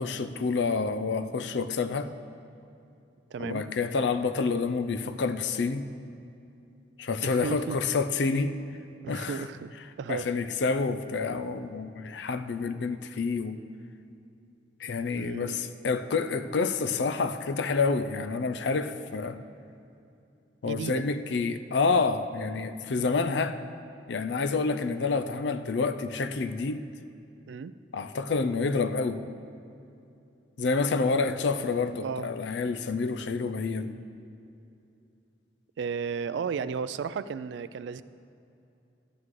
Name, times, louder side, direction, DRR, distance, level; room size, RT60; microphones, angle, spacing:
voice 1, 0.0-2.1 3.4-5.9 7.0-8.5 9.1-9.4 10.1-13.6 14.8-19.4 20.6-23.6 24.1-26.8 27.9-29.2 30.6-34.0, left 4 dB, 70° left, 10 dB, 0.5 m, -28 dB
voice 2, 3.3-3.6 7.2-7.8 9.0-9.7 10.0-10.3 15.1-15.6 20.6-21.0 27.5-27.7 32.0-32.3 35.8-38.0, right 6 dB, 70° right, 15 dB, 0.3 m, -34 dB
12.5 x 9.7 x 3.2 m, 2.7 s
head